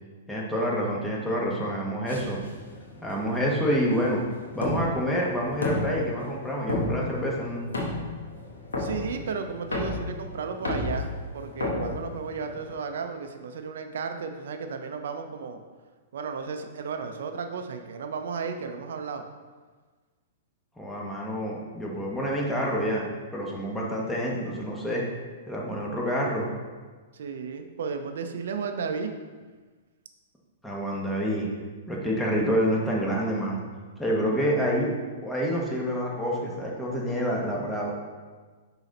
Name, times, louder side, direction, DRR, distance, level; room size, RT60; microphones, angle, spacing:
voice 1, 0.3-2.4 3.0-4.2 4.5-7.6 20.8-25.0 25.5-26.5 30.6-31.5 31.9-33.6 34.0-34.9 35.2-37.9, equal, 5° left, -4 dB, 1.4 m, -27 dB
sound 1, 2.1-12.7, left 2 dB, 90° left, 1.2 m, -33 dB
voice 2, 8.8-15.6 16.1-19.2 27.1-29.1, right 5 dB, 70° right, 6 dB, 0.6 m, -34 dB
5.8 x 3.9 x 4.2 m, 1.4 s
hypercardioid pair, 120°, 0 cm